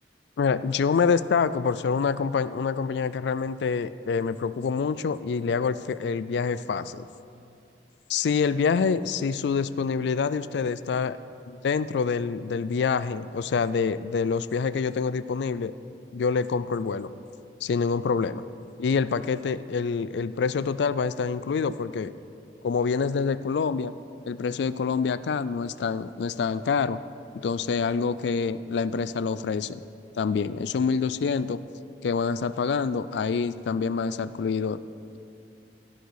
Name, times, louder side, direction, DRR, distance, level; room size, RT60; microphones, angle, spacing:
voice 1, 0.4-7.1 8.1-11.2 11.5-15.7 16.1-17.1 17.6-18.4 18.8-22.1 22.6-23.9 24.2-27.0 27.4-29.8 30.2-31.6 32.0-34.8, left 5 dB, 75° left, 15 dB, 0.3 m, -26 dB
16.0 x 6.6 x 4.7 m, 2.5 s
head